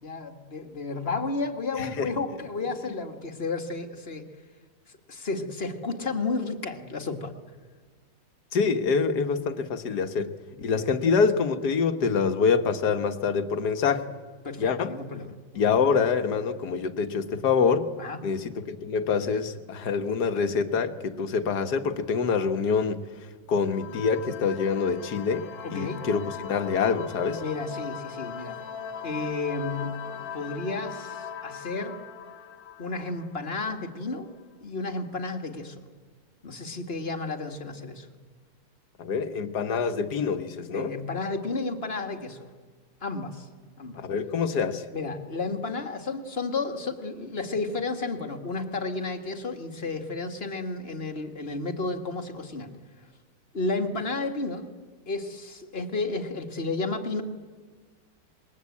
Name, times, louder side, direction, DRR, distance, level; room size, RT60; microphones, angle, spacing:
voice 1, 0.0-4.3 5.1-7.3 10.7-10.9 14.4-15.8 18.0-18.2 25.6-26.0 27.4-28.6 29.0-32.0 32.8-34.3 34.6-35.8 36.4-38.1 40.7-42.4 43.0-43.5 43.8-44.0 44.9-52.7 53.5-54.7 55.1-57.2, left 3 dB, 35° left, 6 dB, 2.0 m, -32 dB
voice 2, 1.8-2.1 8.5-10.3 10.6-14.1 14.6-14.9 15.6-17.9 18.2-23.0 23.5-27.4 39.0-41.0 44.0-44.8, left 5 dB, 65° left, 9 dB, 1.8 m, -26 dB
sound 1, 23.6-34.0, left 7 dB, 90° left, 2.1 m, -39 dB
27.5 x 21.5 x 8.5 m, 1.5 s
omnidirectional pair, 1.9 m